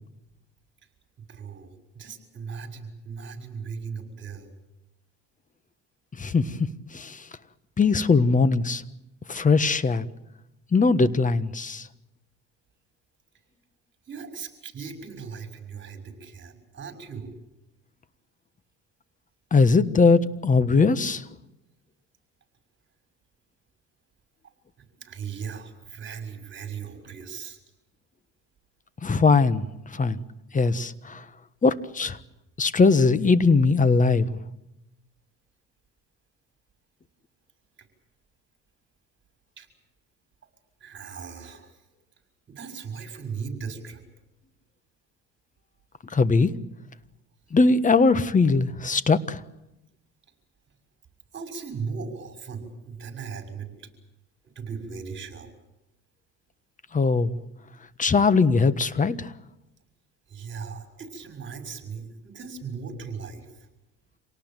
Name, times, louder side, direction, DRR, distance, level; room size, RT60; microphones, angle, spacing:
voice 1, 1.3-4.5 14.1-17.3 25.0-27.6 39.6-39.7 40.8-41.8 42.5-44.0 51.3-53.9 54.5-55.5 60.3-63.5, right 5 dB, 35° right, 6 dB, 6.2 m, -38 dB
voice 2, 7.8-8.8 9.3-10.1 10.7-11.8 19.5-21.2 29.0-29.6 29.9-30.2 30.5-31.2 31.6-32.2 32.6-34.3 46.1-46.5 47.5-49.4 56.9-57.4 58.0-59.3, left 4 dB, 25° left, 15 dB, 1.5 m, -20 dB
27.0 x 18.5 x 9.2 m, 0.91 s
cardioid pair, 100°, 31 cm